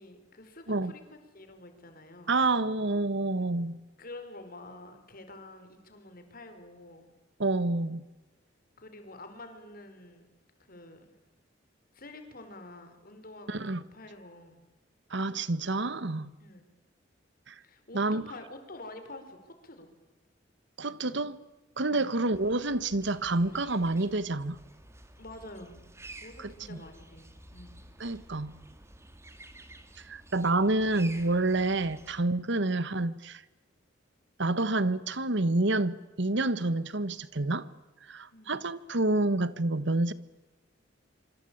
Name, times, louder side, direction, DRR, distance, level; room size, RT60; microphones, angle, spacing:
voice 1, 0.0-2.4 4.0-7.1 8.8-10.3 10.6-11.1 11.9-14.6 16.4-16.7 17.6-19.9 21.8-22.1 25.2-25.8 26.2-27.8 38.3-38.6, left 2 dB, 50° left, 4.7 m, -48 dB
voice 2, 2.3-3.8 7.4-8.0 13.5-13.8 15.1-16.3 17.5-17.6 17.9-18.2 20.8-21.4 21.8-24.6 26.4-26.8 28.0-28.6 30.0-33.4 34.4-37.7 38.1-40.1, right 2 dB, 65° right, 1.4 m, -28 dB
sound 1, 22.3-32.2, right 2 dB, 15° right, 2.4 m, -51 dB
26.5 x 25.0 x 8.7 m
head